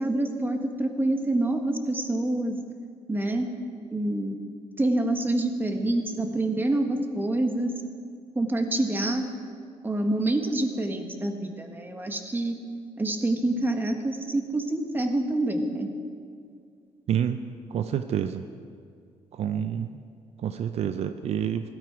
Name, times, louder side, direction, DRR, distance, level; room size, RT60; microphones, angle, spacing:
voice 1, 0.0-2.6 3.1-3.5 3.9-4.4 4.8-7.7 8.3-9.3 9.8-12.5 13.0-15.9, right 1 dB, 15° right, 5 dB, 1.4 m, -26 dB
voice 2, 17.1-17.4 17.7-18.4 19.4-19.9 20.4-21.6, right 9 dB, 60° right, 9 dB, 0.6 m, -27 dB
17.0 x 12.5 x 4.9 m, 2.2 s
cardioid pair, 110°, 12 cm